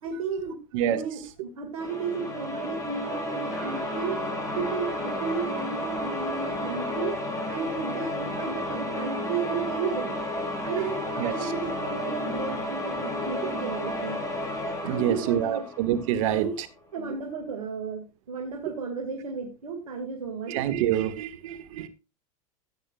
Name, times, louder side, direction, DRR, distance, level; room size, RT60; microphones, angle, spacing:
voice 1, 0.0-0.6 0.8-4.2 4.6-7.2 7.5-10.1 10.6-14.2 14.8-15.7 16.3-16.5 16.9-20.5, right 5 dB, 90° right, 2.2 m, -33 dB
sound 1, 1.8-16.4, left 1 dB, 20° left, 4.4 m, -32 dB
Trumpet, 3.5-7.2, equal, ahead, 6.4 m, -42 dB
voice 2, 14.8-16.5 20.5-21.9, right 10 dB, 70° right, 1.6 m, -26 dB
15.0 x 8.8 x 2.4 m
hypercardioid pair, 100°, 18 cm